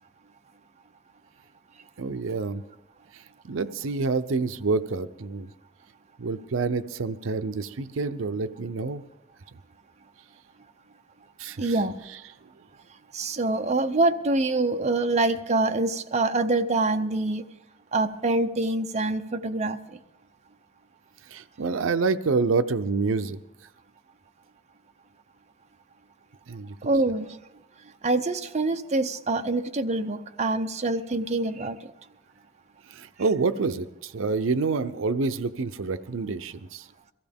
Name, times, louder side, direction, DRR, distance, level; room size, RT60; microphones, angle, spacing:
voice 1, 2.0-2.6 3.1-5.5 6.2-9.0 11.4-11.7 21.3-23.4 26.5-26.8 32.9-36.9, right 4 dB, 80° right, 11 dB, 0.6 m, -27 dB
voice 2, 11.6-11.9 13.1-17.4 17.9-19.8 26.9-27.3 28.0-31.8, right 2 dB, 35° right, 6 dB, 0.6 m, -25 dB
22.5 x 15.5 x 3.5 m, 0.89 s
head